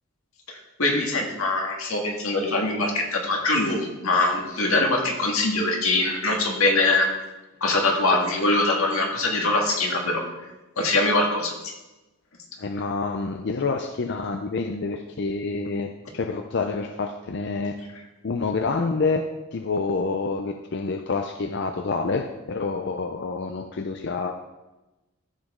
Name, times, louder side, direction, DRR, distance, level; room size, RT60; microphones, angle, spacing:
voice 1, 0.8-7.1 7.6-10.2 10.8-11.5, left 2 dB, 90° left, 1 dB, 1.8 m, -23 dB
voice 2, 12.6-17.8 18.2-24.3, left 4 dB, 55° left, 6 dB, 0.5 m, -27 dB
13.5 x 5.1 x 3.6 m, 1.1 s
head